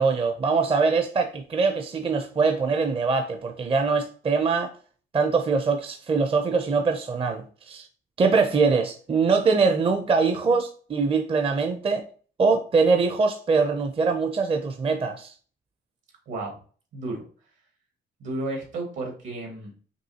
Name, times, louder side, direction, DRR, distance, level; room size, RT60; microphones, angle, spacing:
voice 1, 0.0-4.7 5.1-7.9 8.2-12.0 12.4-15.3, right 4 dB, 30° right, 0.5 m, -23 dB
voice 2, 16.3-16.6 16.9-17.2 18.2-19.7, right 2 dB, 75° right, 1.9 m, -32 dB
5.4 x 2.7 x 2.8 m
cardioid pair, 90°, 20 cm